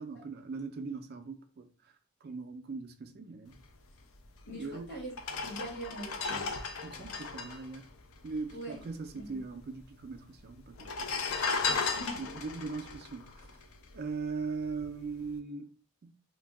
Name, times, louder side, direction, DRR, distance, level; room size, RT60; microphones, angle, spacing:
voice 1, 0.0-1.7 2.2-3.6 4.6-4.9 6.8-7.9 8.2-11.2 12.1-13.5 13.9-15.7 16.0-16.1, right 4 dB, 45° right, 0.4 m, -40 dB
sound 1, 4.4-4.5 5.1-8.8 9.0-9.1 9.3-10.0 10.7-14.2 14.6-14.9, left 4 dB, 70° left, 0.5 m, -35 dB
voice 2, 4.5-5.1 5.4-6.6 8.5-8.8 9.2-9.4 11.7-12.3, right 1 dB, 50° left, 1.2 m, -43 dB
2.6 x 2.2 x 3.3 m
head